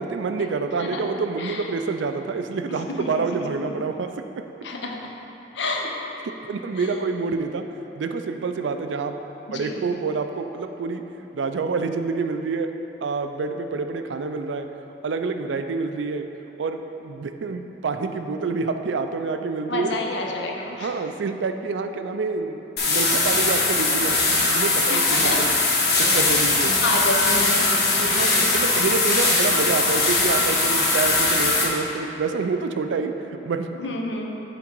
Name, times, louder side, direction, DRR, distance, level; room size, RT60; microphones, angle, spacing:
voice 1, 0.0-4.1 4.4-4.5 6.5-7.6 7.9-9.2 9.5-11.0 11.3-12.7 13.0-14.7 15.0-16.3 16.6-20.0 20.8-24.2 24.5-25.5 26.1-26.8 28.0-33.7, right 4 dB, 90° right, 7 dB, 0.4 m, -27 dB
voice 2, 2.7-3.4 4.6-5.0 5.5-5.9 6.8-6.9 9.5-9.9 19.7-20.9 24.9-25.6 26.1-26.4 26.8-28.4 33.8-34.4, left 2 dB, 80° left, 1 dB, 0.7 m, -29 dB
sound 1, 22.8-31.6, left 3 dB, 60° left, 1.1 m, -20 dB
7.7 x 3.6 x 4.5 m, 3.0 s
head